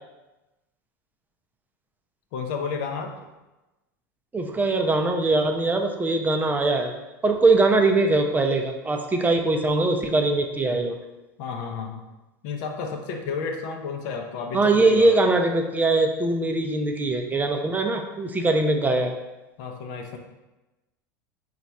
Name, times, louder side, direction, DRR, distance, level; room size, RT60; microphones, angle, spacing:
voice 1, 2.3-3.1 11.4-12.0 12.4-15.2 19.6-20.2, left 5 dB, 65° left, 4 dB, 0.6 m, -31 dB
voice 2, 4.3-6.9 7.2-11.0 14.5-19.1, right 2 dB, 15° right, 3 dB, 0.5 m, -22 dB
3.9 x 2.4 x 4.4 m, 1.1 s
hypercardioid pair, 95°, 11 cm